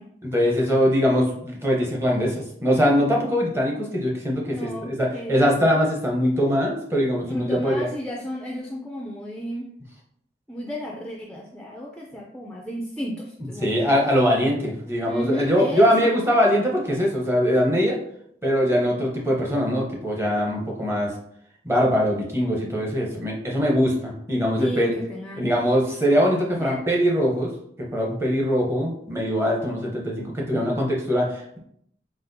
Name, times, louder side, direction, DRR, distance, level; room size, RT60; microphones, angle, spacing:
voice 1, 0.2-7.9 13.6-18.0 18.4-21.1 21.6-24.9 25.4-27.5 27.8-31.6, equal, 15° right, -1 dB, 0.8 m, -22 dB
voice 2, 4.4-5.5 7.3-9.7 10.5-14.0 15.1-16.4 24.6-25.5 26.6-26.8, equal, 5° left, -2 dB, 0.4 m, -33 dB
4.2 x 4.0 x 2.6 m, 0.71 s
head